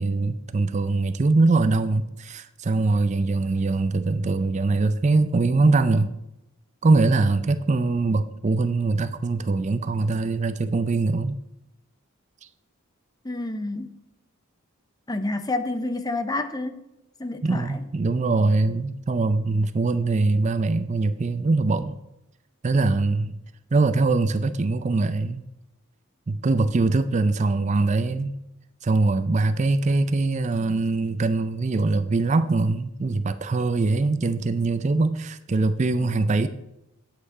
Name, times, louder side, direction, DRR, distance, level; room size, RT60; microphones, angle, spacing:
voice 1, 0.0-6.1 6.8-11.4 17.4-22.0 22.6-23.4 23.7-25.4 26.3-28.3 28.8-36.5, right 3 dB, 30° right, 0.4 m, -22 dB
voice 2, 13.2-14.0 15.1-16.9 17.2-17.8 36.0-36.1, left 2 dB, 15° left, 0.6 m, -29 dB
8.6 x 8.1 x 4.9 m
head